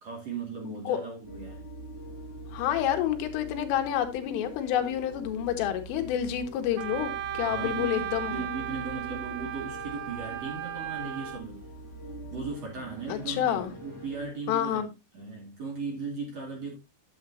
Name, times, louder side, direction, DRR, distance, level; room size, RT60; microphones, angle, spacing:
voice 1, 0.0-1.7 7.4-11.6 12.3-14.8 15.1-16.8, right 4 dB, 40° right, 2.9 m, -37 dB
voice 2, 0.6-1.0 2.5-8.4 13.1-13.7 14.5-14.9, left 11 dB, 85° left, 3.7 m, -29 dB
sound 1, 1.2-14.3, right 1 dB, 5° right, 2.5 m, -44 dB
Wind instrument woodwind instrument, 6.8-11.4, right 11 dB, 80° right, 2.6 m, -36 dB
9.5 x 8.5 x 2.7 m
omnidirectional pair, 5.6 m